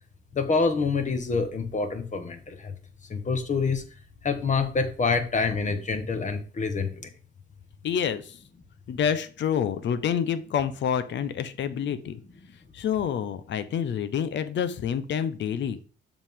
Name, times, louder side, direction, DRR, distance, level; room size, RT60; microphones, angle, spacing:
voice 1, 0.3-2.7 3.1-3.8 4.2-7.1, left 4 dB, 40° left, 7 dB, 1.5 m, -26 dB
voice 2, 7.8-8.4 8.9-12.2 12.5-15.8, left 8 dB, 65° left, 12 dB, 0.9 m, -28 dB
7.2 x 5.4 x 3.7 m, 0.39 s
cardioid pair, 90°, 20 cm